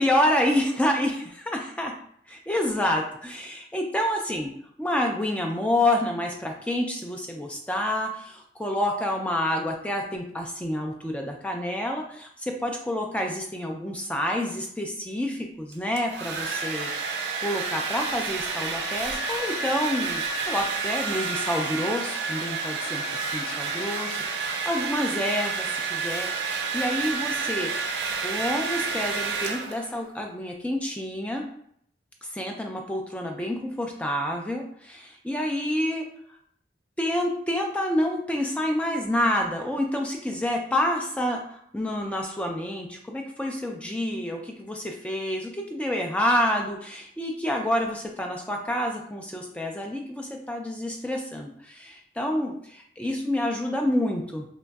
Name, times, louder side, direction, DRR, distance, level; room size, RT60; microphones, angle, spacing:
voice 1, 0.0-1.9 2.3-4.5 4.8-23.0 23.3-27.9 28.2-31.5 32.3-36.1 37.0-54.5, left 1 dB, 5° left, 2 dB, 0.3 m, -28 dB
Domestic sounds home sounds, 15.7-30.0, right 4 dB, 65° right, 0.4 m, -30 dB
2.9 x 2.5 x 2.3 m, 0.67 s
head